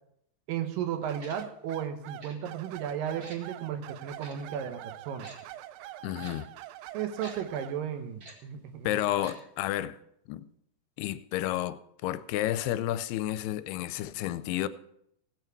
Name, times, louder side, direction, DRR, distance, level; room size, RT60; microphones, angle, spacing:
voice 1, 0.5-5.3 6.9-9.0, right 9 dB, 70° right, 2.4 m, -34 dB
sound 1, 1.1-7.8, right 14 dB, 90° right, 2.6 m, -45 dB
Tick-tock, 1.2-1.4 2.2-2.3 3.2-3.4 4.2-4.3 5.2-5.4 6.2-6.3 7.2-7.3 8.2-8.3 9.2-9.3 9.6-9.7, right 2 dB, 40° right, 1.4 m, -47 dB
voice 2, 6.0-6.5 8.8-10.0 10.3-10.4 11.0-14.7, left 13 dB, 85° left, 2.6 m, -31 dB
17.5 x 8.2 x 4.6 m
omnidirectional pair, 4.5 m